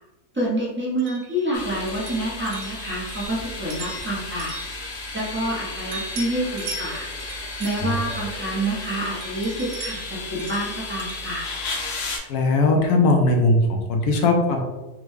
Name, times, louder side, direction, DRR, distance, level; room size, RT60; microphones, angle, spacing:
voice 1, 0.3-4.5 5.1-7.1 7.6-11.4, right 1 dB, 20° right, -6 dB, 0.3 m, -27 dB
sound 1, 1.0-5.6 5.9-8.8 9.2-12.3, right 3 dB, 90° right, 1.2 m, -40 dB
sound 2, 1.5-12.2, left 3 dB, 60° left, 0.7 m, -34 dB
voice 2, 12.3-14.6, left 2 dB, 85° left, 3 dB, 1.2 m, -19 dB
3.6 x 2.1 x 3.1 m, 1.1 s
omnidirectional pair, 1.6 m